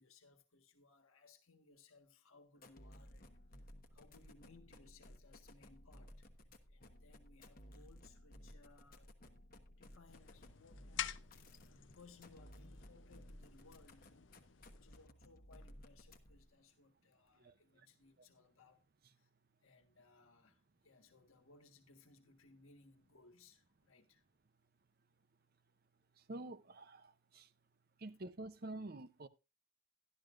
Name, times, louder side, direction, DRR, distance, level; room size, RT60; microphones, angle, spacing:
voice 1, 0.0-9.1 9.7-11.4 11.6-18.8 19.1-19.3 19.6-24.2, left 3 dB, 80° left, 1.5 m, -65 dB
sound 1, 2.5-16.5, left 1 dB, 40° left, 1.1 m, -58 dB
sound 2, 10.1-15.1, left 10 dB, 60° left, 0.5 m, -49 dB
voice 2, 17.4-17.9 26.2-27.5 28.0-29.3, right 2 dB, 45° right, 0.6 m, -49 dB
12.0 x 12.0 x 2.5 m
head